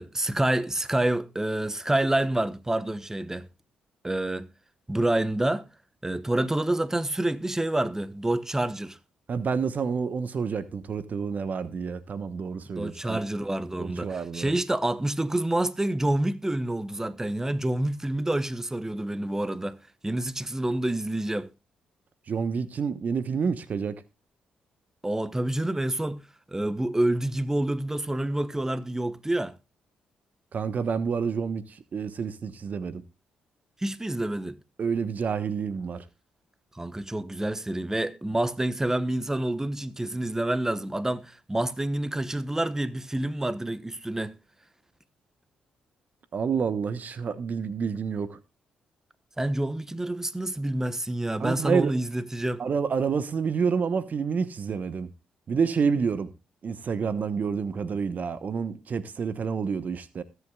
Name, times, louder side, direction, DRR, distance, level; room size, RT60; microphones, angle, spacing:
voice 1, 0.0-3.5 4.0-4.5 4.9-5.6 6.0-9.0 12.7-19.8 20.0-21.5 25.0-26.2 26.5-29.5 33.8-34.6 36.7-44.3 49.4-52.6, right 1 dB, 15° right, 1.1 m, -28 dB
voice 2, 9.3-13.2 13.8-14.5 22.3-24.0 30.5-33.0 34.8-36.0 46.3-48.4 51.4-51.9 52.6-55.1 55.5-56.3 56.6-60.2, right 6 dB, 50° right, 1.1 m, -28 dB
21.5 x 8.2 x 2.3 m
hypercardioid pair, 45°, 3 cm